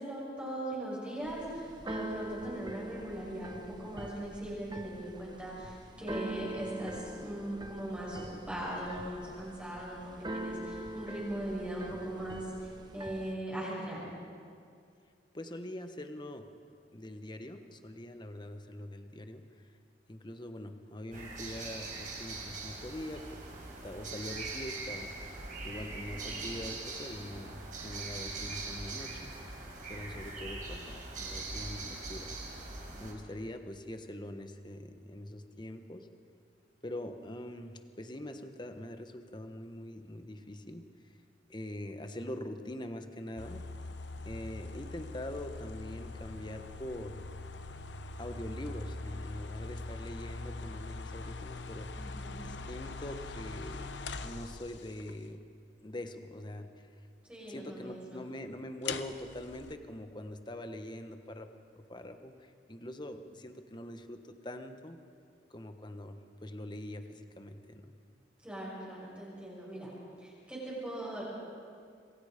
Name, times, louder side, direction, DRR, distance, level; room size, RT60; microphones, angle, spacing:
voice 1, 0.0-14.1 52.0-52.5 57.3-58.2 68.4-69.9 70.2-71.2, right 1 dB, 5° right, -7 dB, 6.3 m, -40 dB
Keyboard (musical), 1.2-13.3, right 1 dB, 25° right, 1.1 m, -43 dB
voice 2, 15.3-16.5 16.9-19.7 20.1-29.4 29.8-32.3 33.0-36.1 36.8-40.8 41.5-43.6 44.2-47.2 48.2-52.1 52.4-53.9 54.2-55.4 55.8-56.9 57.5-65.0 65.5-67.9, left 1 dB, 25° left, 7 dB, 1.2 m, -43 dB
sound 1, 21.1-33.1, right 3 dB, 45° right, 5.0 m, -42 dB
sound 2, 43.4-55.1 58.8-59.7, left 3 dB, 85° left, 1.0 m, -42 dB
27.0 x 23.0 x 5.1 m, 2.3 s
head